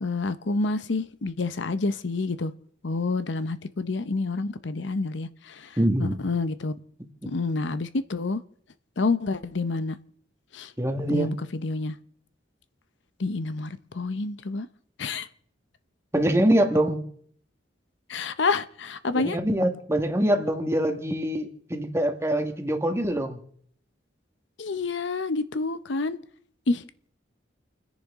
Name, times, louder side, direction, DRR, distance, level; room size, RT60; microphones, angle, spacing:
voice 1, 0.0-2.5 2.8-6.7 7.3-8.4 9.0-10.0 10.5-10.7 11.1-11.9 13.2-14.7 15.0-15.3 18.1-19.4 24.6-26.2 26.7-26.8, left 3 dB, 65° left, 0.7 m, -28 dB
voice 2, 5.8-6.2 10.8-11.3 16.1-17.0 19.1-23.4, right 1 dB, 15° right, 1.5 m, -24 dB
30.0 x 10.5 x 3.6 m
head